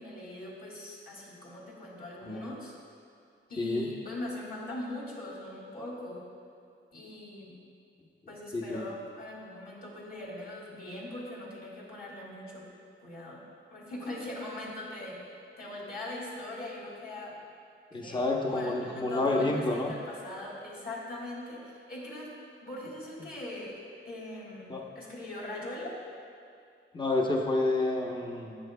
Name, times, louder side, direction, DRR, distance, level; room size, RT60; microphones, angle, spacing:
voice 1, 0.0-2.7 3.5-6.3 6.9-7.6 8.3-12.6 13.0-13.4 13.7-17.4 17.9-22.3 22.6-23.8 24.1-26.0, left 1 dB, 45° left, -5 dB, 2.2 m, -41 dB
voice 2, 17.9-19.9 24.7-24.8 26.9-28.6, left 2 dB, 20° left, 0 dB, 0.9 m, -29 dB
15.0 x 7.4 x 2.2 m, 2.4 s
wide cardioid pair, 150°, 21 cm